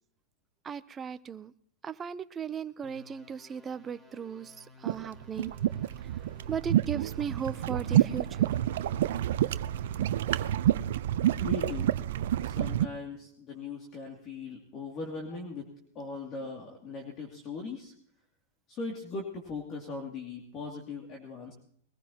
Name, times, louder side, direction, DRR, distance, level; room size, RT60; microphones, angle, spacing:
voice 1, 0.7-1.5 1.8-4.5 4.8-5.5 6.5-8.5, right 7 dB, 20° right, 13 dB, 0.6 m, -37 dB
sound 1, 2.8-10.4, left 2 dB, ahead, 2.1 m, -56 dB
sound 2, 4.9-12.9, right 12 dB, 70° right, 0.6 m, -28 dB
voice 2, 11.4-11.9 12.4-15.7 15.9-17.9 18.7-21.5, left 3 dB, 35° left, 0 dB, 2.5 m, -39 dB
21.5 x 15.0 x 2.9 m, 0.63 s
hypercardioid pair, 135°, 0 cm